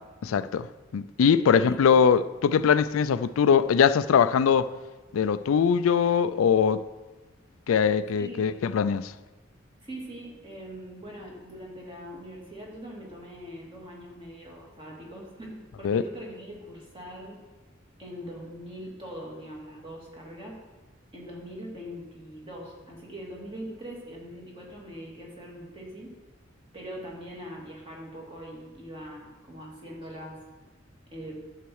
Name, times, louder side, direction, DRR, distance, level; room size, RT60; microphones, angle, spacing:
voice 1, 0.2-0.7 0.9-4.7 5.1-6.8 7.7-9.1 15.8-16.0, left 7 dB, 80° left, 0.4 m, -22 dB
voice 2, 1.4-2.0 8.1-8.5 9.8-17.4 18.0-20.6 21.1-26.1 26.7-30.4 31.1-31.4, equal, 25° right, 2.5 m, -42 dB
11.5 x 7.3 x 4.7 m
head